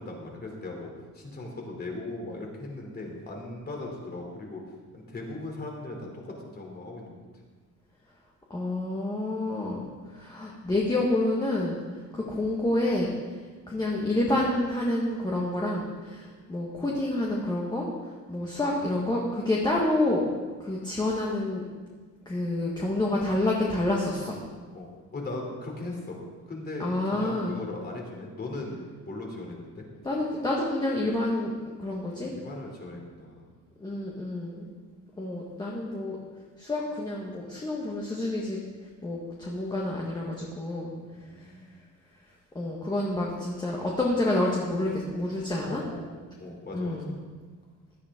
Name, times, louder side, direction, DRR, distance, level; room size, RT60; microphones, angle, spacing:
voice 1, 0.0-4.6 4.9-7.2 12.2-12.3 18.4-18.6 24.7-26.2 26.5-29.8 32.2-33.5 41.1-41.8 45.6-47.1, left 2 dB, 30° left, 0 dB, 3.1 m, -38 dB
voice 2, 8.5-9.9 10.1-11.8 12.1-13.1 13.7-17.9 18.3-20.2 20.6-21.6 22.2-24.3 26.8-27.6 30.0-31.5 31.8-32.3 33.8-34.7 35.2-36.2 36.6-38.6 39.0-40.9 42.5-45.8 46.7-47.1, left 1 dB, 15° left, -3 dB, 1.6 m, -28 dB
17.0 x 12.0 x 3.7 m, 1.4 s
cardioid pair, 150°, 30 cm